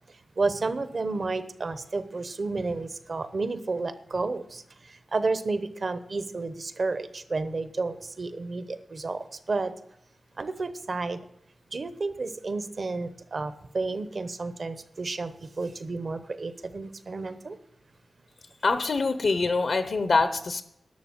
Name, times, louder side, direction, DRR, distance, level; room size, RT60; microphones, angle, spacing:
voice 1, 0.4-4.6 5.1-9.7 10.4-11.2 11.7-17.6, right 3 dB, 55° right, 12 dB, 0.9 m, -31 dB
voice 2, 18.6-20.6, left 3 dB, 70° left, 10 dB, 0.8 m, -24 dB
11.5 x 6.9 x 8.7 m, 0.76 s
wide cardioid pair, 115°, 0 cm